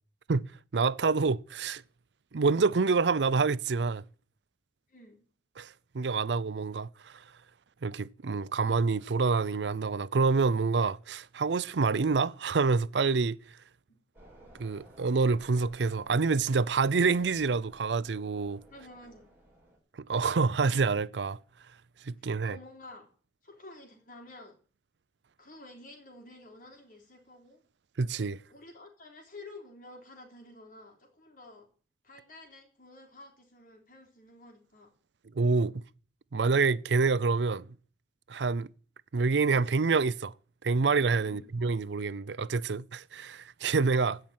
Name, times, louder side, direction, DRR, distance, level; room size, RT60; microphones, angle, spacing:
voice 1, 0.3-1.8 2.3-4.0 5.6-7.1 7.8-13.4 14.6-18.6 20.1-21.4 22.1-22.6 28.0-28.4 35.4-35.8 36.3-37.7 38.3-38.7 39.1-40.3 40.6-44.2, right 4 dB, 85° right, 0.6 m, -27 dB
voice 2, 4.9-5.2 13.9-14.0 18.7-19.3 22.4-23.1 23.4-24.6 25.4-27.6 28.5-31.7 32.0-34.9 41.2-41.5, left 2 dB, 55° left, 3.7 m, -51 dB
sound 1, 14.1-19.8, right 1 dB, 10° right, 7.1 m, -57 dB
16.0 x 5.8 x 9.3 m
head